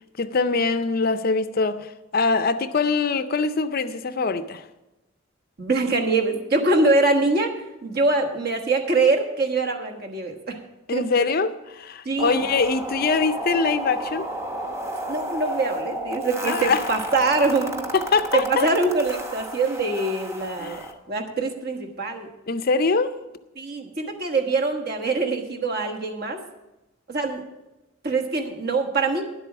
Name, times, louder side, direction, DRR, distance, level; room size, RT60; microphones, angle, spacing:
voice 1, 0.2-4.6 10.9-14.3 16.4-16.8 17.9-18.7 20.6-20.9 22.5-23.1, left 4 dB, 45° left, 0.5 m, -23 dB
voice 2, 5.6-10.6 10.9-11.0 12.0-12.4 15.1-17.9 18.3-22.3 23.6-26.4 27.1-27.4 28.0-29.2, right 3 dB, 50° right, 1.3 m, -24 dB
sound 1, 12.2-20.9, right 1 dB, 15° right, 0.8 m, -32 dB
10.5 x 8.0 x 6.0 m
head